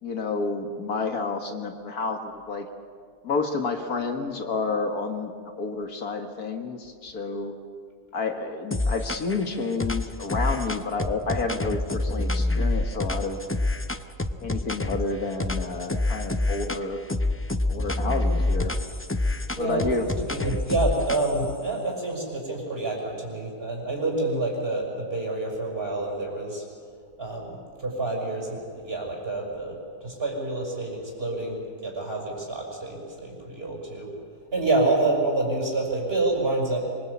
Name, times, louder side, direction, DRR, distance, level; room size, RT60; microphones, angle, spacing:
voice 1, 0.0-2.7 3.2-7.5 8.1-13.4 14.4-17.0 17.7-18.7 19.6-20.1, left 4 dB, 70° left, 5 dB, 2.1 m, -30 dB
sound 1, 8.7-9.4 9.8-15.1 15.4-16.8 17.1-21.5, left 2 dB, 20° left, 0.3 m, -27 dB
voice 2, 19.2-26.6 27.2-34.1 34.5-36.9, right 2 dB, 35° right, -1 dB, 6.6 m, -28 dB
25.5 x 24.0 x 8.6 m, 2.1 s
omnidirectional pair, 1.7 m